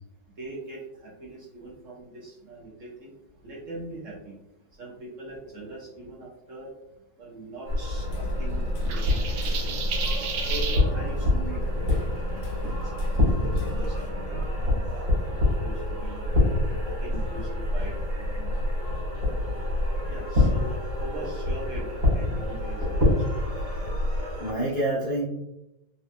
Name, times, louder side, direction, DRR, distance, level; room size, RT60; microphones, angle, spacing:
voice 1, 0.4-3.1 3.4-4.3 4.8-6.7 7.2-8.6 8.9-9.8 10.4-11.6 13.2-15.1 15.6-16.2 16.7-18.6 20.1-23.5, right 2 dB, 55° right, -4 dB, 1.0 m, -41 dB
sound 1, 7.7-24.5, left 2 dB, 70° right, 1.7 m, -26 dB
Hammer, 8.0-14.1, left 3 dB, 80° left, 1.2 m, -46 dB
sound 2, 8.9-10.8, right 6 dB, 90° right, 1.3 m, -32 dB
voice 2, 24.1-25.2, right 1 dB, 50° left, -7 dB, 0.6 m, -28 dB
4.1 x 2.3 x 2.5 m, 0.89 s
omnidirectional pair, 1.8 m